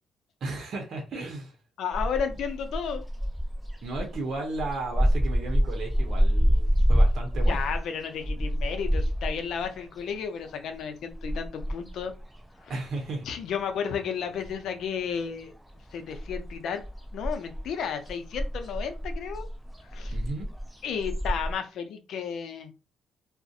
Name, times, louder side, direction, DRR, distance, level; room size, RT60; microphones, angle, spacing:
voice 1, 0.4-1.6 3.8-7.6 12.7-13.2 20.1-20.5, right 3 dB, 65° right, 0.7 m, -34 dB
voice 2, 1.8-3.0 7.3-12.1 12.6-12.8 13.3-15.5 15.9-16.8 17.1-19.5 19.8-20.2 20.8-22.7, left 7 dB, 75° left, 0.4 m, -33 dB
sound 1, 1.9-13.5 13.8-15.1 15.4-21.6, equal, ahead, 0.5 m, -27 dB
2.3 x 2.1 x 2.6 m
cardioid pair, 90°, 0 cm